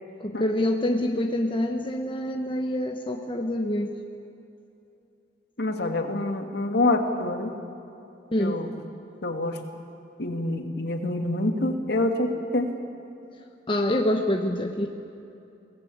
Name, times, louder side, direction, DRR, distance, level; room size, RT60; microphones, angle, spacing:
voice 1, 0.2-3.9 8.3-8.6 13.7-14.9, left 1 dB, 25° left, 3 dB, 1.0 m, -26 dB
voice 2, 5.6-7.5 8.4-8.7 9.2-9.6 10.2-12.7, left 2 dB, 60° left, 5 dB, 2.1 m, -26 dB
22.5 x 18.5 x 8.6 m, 2.7 s
head